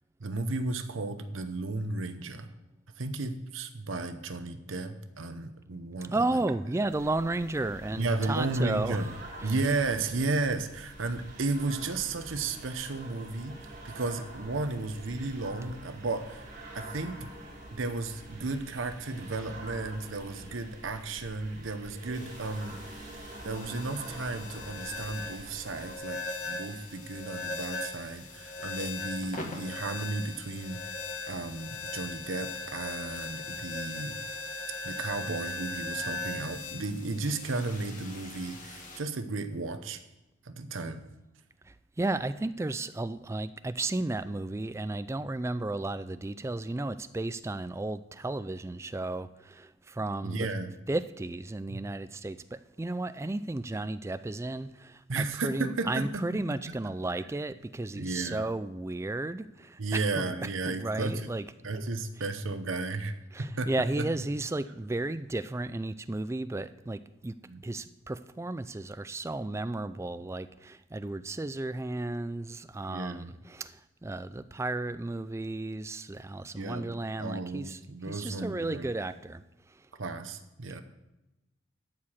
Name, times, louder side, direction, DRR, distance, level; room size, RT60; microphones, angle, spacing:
voice 1, 0.2-2.5 3.0-6.4 7.9-9.1 9.4-16.4 16.7-17.2 17.7-30.9 31.3-34.2 34.8-40.0 40.4-41.0 50.2-50.7 51.7-51.8 55.1-56.7 57.9-58.5 59.8-61.3 61.6-63.7 64.0-64.1 67.5-67.6 72.9-73.3 76.5-78.9 80.0-80.8, right 3 dB, 80° right, 9 dB, 0.8 m, -34 dB
voice 2, 6.1-9.5 41.6-50.5 50.9-61.4 63.3-67.4 67.6-77.8 78.1-79.9, right 2 dB, 15° right, 13 dB, 0.3 m, -34 dB
sound 1, 6.9-26.0, right 1 dB, 40° right, 4.2 m, -46 dB
sound 2, 22.1-39.0, left 3 dB, 40° left, 1.6 m, -39 dB
12.5 x 4.9 x 7.3 m, 0.98 s
head